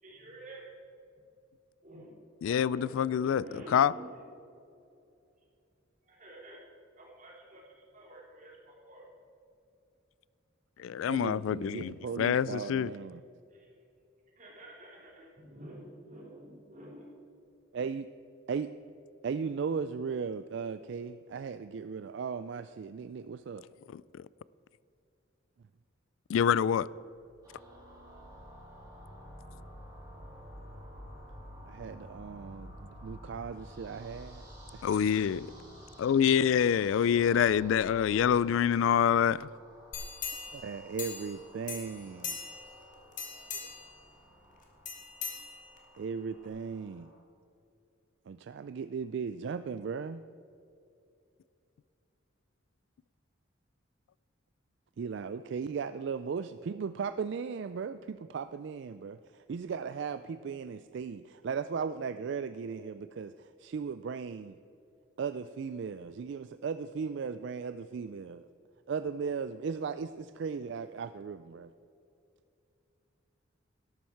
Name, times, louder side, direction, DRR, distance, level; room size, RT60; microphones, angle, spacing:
voice 1, 0.0-0.7 1.8-2.2 2.6-3.0 3.3-4.2 6.1-6.7 7.0-9.1 13.5-13.7 14.4-17.1, right 1 dB, 40° right, 3.6 m, -49 dB
voice 2, 2.4-3.4 3.7-3.9 10.8-12.9 23.9-24.0 26.3-26.9 34.8-35.5 36.0-39.5, left 8 dB, 75° left, 0.3 m, -26 dB
voice 3, 11.1-13.2 17.7-18.1 18.5-18.7 19.2-23.6 31.6-34.5 34.7-34.9 37.3-37.4 40.5-42.4 46.0-47.1 48.3-50.2 55.0-64.6 65.2-68.5 68.9-71.7, right 5 dB, 60° right, 0.3 m, -37 dB
sound 1, 27.1-36.7, equal, 5° left, 3.5 m, -51 dB
sound 2, 27.4-47.2, equal, 20° right, 3.4 m, -54 dB
sound 3, 39.9-41.4 41.7-42.7 43.1-43.9 44.8-46.0 46.4-46.5, left 5 dB, 40° left, 1.9 m, -40 dB
13.0 x 12.0 x 4.6 m
head